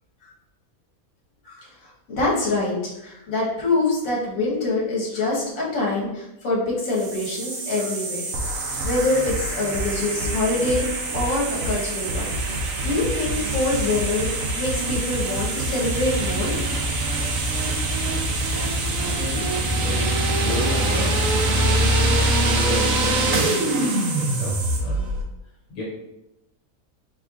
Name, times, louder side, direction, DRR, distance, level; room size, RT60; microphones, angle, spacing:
voice 1, 1.4-12.3 12.6-16.5, left 2 dB, 70° left, -5 dB, 1.7 m, -25 dB
sound 1, 6.8-24.8, right 4 dB, 90° right, 1.3 m, -32 dB
sound 2, 8.3-25.2, right 1 dB, 70° right, 1.1 m, -24 dB
voice 2, 19.0-19.5 19.8-22.1 22.4-23.8 24.2-25.1 25.7-25.8, left 1 dB, 90° left, -5 dB, 1.5 m, -32 dB
4.5 x 4.1 x 2.4 m, 0.90 s
omnidirectional pair, 1.5 m